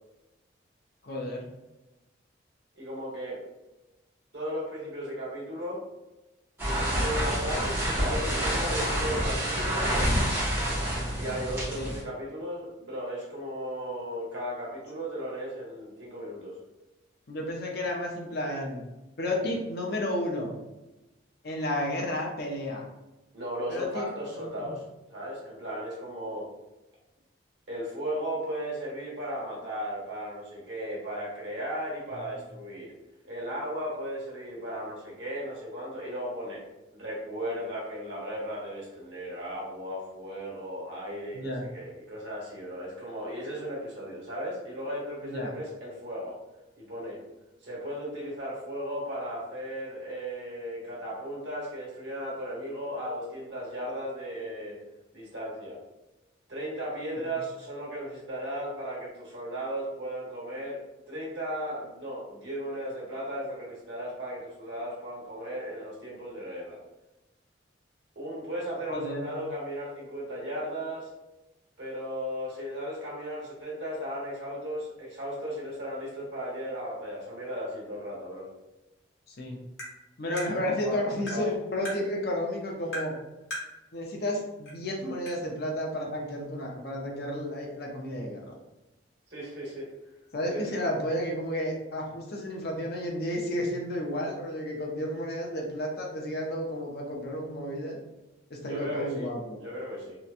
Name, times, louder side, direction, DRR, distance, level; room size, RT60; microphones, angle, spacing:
voice 1, 1.0-1.5 11.7-11.9 17.3-18.8 19.2-20.5 21.4-22.9 23.7-24.1 24.4-24.7 41.3-41.7 45.2-45.5 57.2-57.4 68.9-69.3 79.3-79.6 80.2-83.1 83.9-88.6 90.3-98.0 98.5-99.6, left 1 dB, 55° left, 0 dB, 0.5 m, -32 dB
voice 2, 2.8-3.4 4.3-5.8 6.9-9.9 11.1-16.6 23.3-24.8 25.1-26.5 27.7-32.9 33.2-36.6 36.9-46.4 46.8-47.2 47.6-54.8 55.1-55.8 56.5-66.8 68.1-71.1 71.8-78.5 80.5-81.0 81.3-81.4 87.3-87.4 89.3-89.9 90.5-90.7 98.6-99.3 99.6-100.2, equal, 65° right, -5 dB, 1.0 m, -36 dB
sound 1, 6.6-12.0, equal, 10° right, 0.8 m, -28 dB
Tap, 79.8-79.9 80.4-80.5 81.3-81.4 81.8-82.0 82.9-83.1 83.5-83.7 84.7-84.8 85.3-85.4, equal, 70° left, 1.2 m, -36 dB
2.8 x 2.1 x 2.4 m, 1.0 s
head